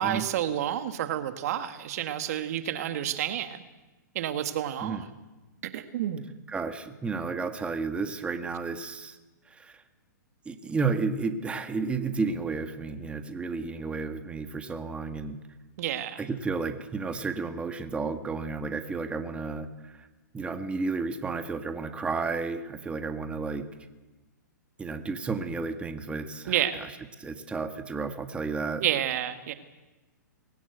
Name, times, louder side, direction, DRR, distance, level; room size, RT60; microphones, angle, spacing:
voice 1, 0.0-3.6 4.1-5.0 5.7-6.2 15.8-16.2 26.5-26.8 28.8-29.5, right 11 dB, 55° right, 9 dB, 1.7 m, -29 dB
voice 2, 6.5-9.2 9.5-9.8 10.4-15.4 16.2-20.1 20.3-23.6 24.8-26.9 27.2-28.8, right 4 dB, 10° right, 8 dB, 1.5 m, -32 dB
21.0 x 17.5 x 8.1 m, 1.1 s
hypercardioid pair, 125°, 10 cm